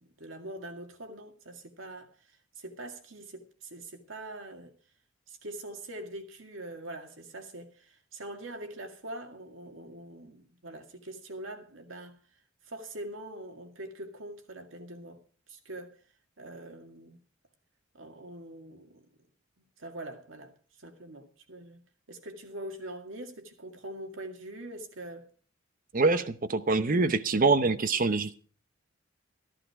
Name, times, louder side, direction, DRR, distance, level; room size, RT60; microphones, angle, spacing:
voice 1, 0.0-4.8 5.3-12.2 12.6-16.0 16.4-17.2 17.9-19.0 19.6-25.3, right 1 dB, 80° right, 2.1 m, -43 dB
voice 2, 25.9-28.3, right 3 dB, 45° right, 0.8 m, -25 dB
14.0 x 12.0 x 4.7 m
head